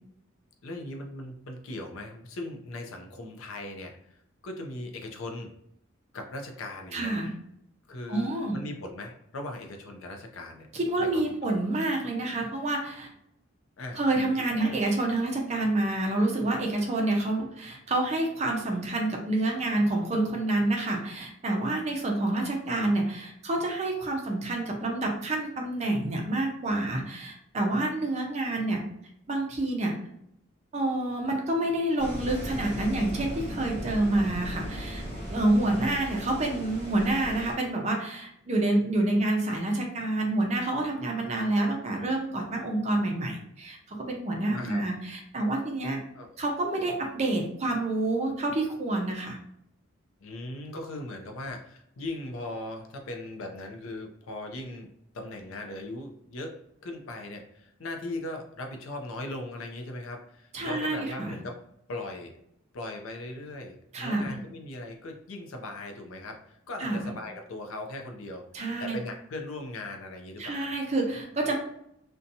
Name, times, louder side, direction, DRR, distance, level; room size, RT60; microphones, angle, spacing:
voice 1, 0.6-5.5 6.1-7.1 7.9-10.7 11.0-11.2 11.6-11.8 13.8-14.0 14.4-14.8 35.7-35.9 44.5-44.8 46.1-46.4 50.2-54.9 55.1-56.5 56.8-61.6 61.9-62.3 62.7-68.5 68.8-70.7, left 2 dB, 75° left, 3 dB, 0.5 m, -39 dB
voice 2, 6.9-7.3 8.1-8.6 10.7-13.1 13.9-28.8 29.3-29.9 30.7-35.0 35.3-46.0 46.4-49.4 60.5-61.4 63.9-64.4 66.8-67.0 68.5-69.0 70.4-71.6, right 2 dB, 30° right, 1 dB, 0.4 m, -28 dB
sound 1, 32.0-37.5, equal, 30° left, 0.9 m, -37 dB
2.6 x 2.2 x 2.6 m, 0.75 s
head